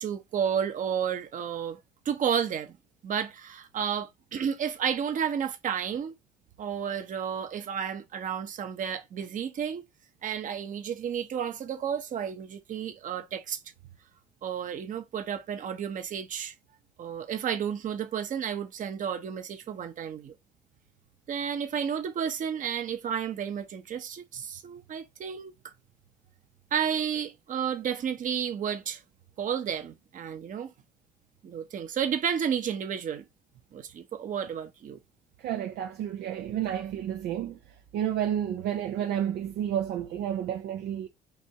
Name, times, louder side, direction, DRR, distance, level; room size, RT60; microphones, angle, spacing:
voice 1, 0.0-2.8 3.0-6.1 6.6-9.8 10.2-13.6 14.4-16.5 17.0-20.3 21.3-25.7 26.7-29.0 29.4-30.7 31.4-33.2 33.7-35.0, right 8 dB, 50° right, 1.1 m, -32 dB
voice 2, 35.4-37.6 37.9-41.1, right 10 dB, 75° right, 0.6 m, -30 dB
4.7 x 2.8 x 3.5 m
cardioid pair, 110°, 17 cm